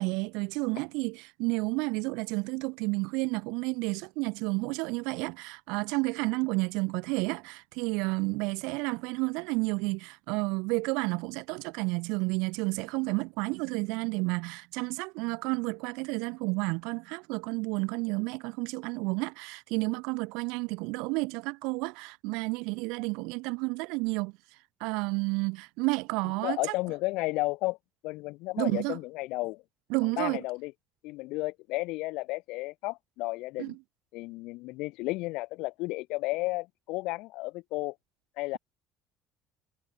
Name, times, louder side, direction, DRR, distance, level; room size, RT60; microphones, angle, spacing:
voice 1, 0.0-24.3 24.8-26.6 28.6-29.0 29.9-30.4 33.6-33.8, right 28 dB, 85° right, 0.4 m, -31 dB
voice 2, 26.4-27.8 28.0-29.6 30.2-30.7 31.0-33.8 34.1-37.9 38.4-38.6, left 22 dB, 70° left, 0.6 m, -33 dB
cardioid pair, 165°, 0 cm